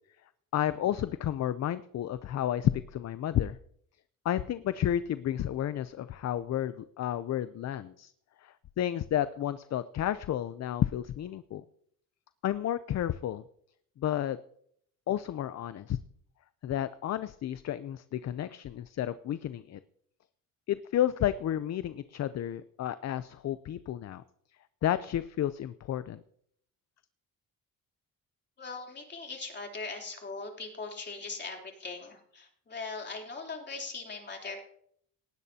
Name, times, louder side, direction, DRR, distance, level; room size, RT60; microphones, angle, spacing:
voice 1, 0.5-3.6 4.2-8.1 8.4-11.6 12.4-13.4 14.0-14.4 15.1-16.0 16.6-19.8 20.7-24.2 24.8-26.2, left 11 dB, 50° left, 13 dB, 0.6 m, -31 dB
voice 2, 28.6-34.6, left 4 dB, 30° left, 1 dB, 3.4 m, -40 dB
19.0 x 16.0 x 2.8 m, 0.68 s
cardioid pair, 130°, 34 cm